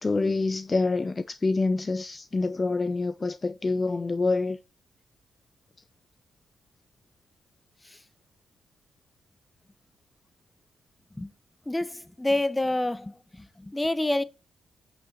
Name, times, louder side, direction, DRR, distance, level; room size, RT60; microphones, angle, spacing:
voice 1, 0.0-4.6, left 3 dB, 35° left, 0.5 m, -26 dB
voice 2, 11.7-14.2, left 1 dB, 15° left, 0.9 m, -28 dB
8.9 x 6.2 x 4.1 m
hypercardioid pair, 40°, 0 cm